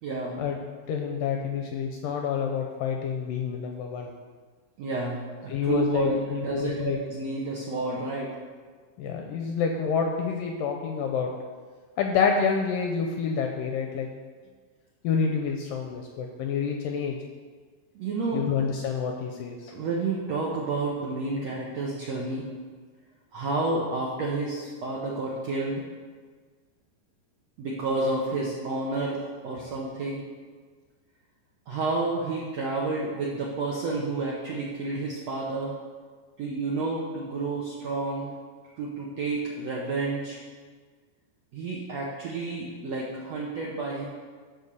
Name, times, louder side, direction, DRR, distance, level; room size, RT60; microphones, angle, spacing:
voice 1, 0.0-0.4 4.8-8.4 17.9-18.5 19.7-22.5 23.3-25.8 27.6-30.2 31.7-35.7 36.4-38.3 38.8-40.4 41.5-44.1, right 3 dB, 75° right, -4 dB, 1.5 m, -30 dB
voice 2, 0.9-4.1 5.5-7.0 9.0-11.3 12.0-14.1 15.0-17.2 18.3-19.7 29.0-29.1, left 6 dB, 80° left, 2 dB, 2.0 m, -28 dB
12.0 x 4.5 x 6.7 m, 1.5 s
omnidirectional pair, 4.6 m